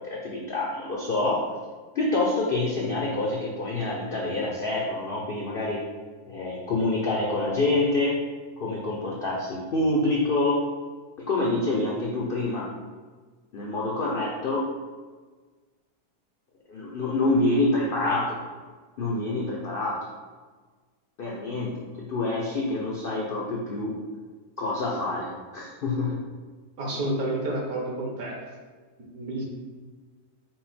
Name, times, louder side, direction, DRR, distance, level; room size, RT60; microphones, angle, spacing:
voice 1, 0.0-1.4 1.9-5.8 6.3-8.2 8.6-10.6 11.2-12.7 13.5-14.7 16.7-18.4 19.0-20.0 21.2-24.0 24.6-26.2, left 2 dB, 90° left, -3 dB, 0.4 m, -27 dB
voice 2, 26.8-28.4 29.0-29.4, right 1 dB, 65° right, -1 dB, 1.4 m, -30 dB
5.6 x 2.1 x 4.2 m, 1.4 s
omnidirectional pair, 1.7 m